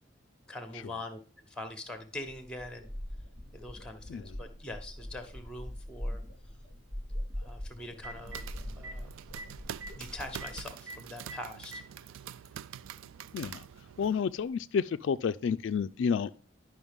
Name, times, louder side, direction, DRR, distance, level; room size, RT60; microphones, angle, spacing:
voice 1, 0.5-2.9 3.5-6.2 7.4-9.1 10.0-11.8, left 1 dB, 5° left, 1.0 m, -43 dB
sound 1, 2.3-10.7, equal, 35° right, 1.3 m, -42 dB
Telephone, 5.2-5.3 7.5-7.6 7.9-8.4 8.8-8.9 9.4-9.5 9.7-9.9 10.4-10.5 10.9-11.0 11.3-11.9 12.8-12.9 14.4-14.5, right 2 dB, 55° right, 1.6 m, -43 dB
sound 2, 8.0-14.2, right 10 dB, 80° right, 0.3 m, -46 dB
voice 2, 14.0-16.3, left 6 dB, 65° left, 0.3 m, -30 dB
11.0 x 5.7 x 3.6 m
head